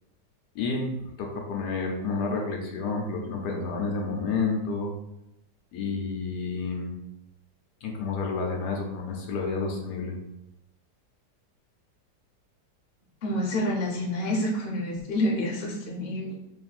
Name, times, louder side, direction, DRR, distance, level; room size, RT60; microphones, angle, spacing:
voice 1, 0.5-4.9 5.7-6.9 7.8-10.1, left 4 dB, 75° left, 1 dB, 1.2 m, -30 dB
voice 2, 13.2-16.3, left 1 dB, 45° left, -2 dB, 0.8 m, -28 dB
3.1 x 2.6 x 4.0 m, 0.86 s
omnidirectional pair, 1.8 m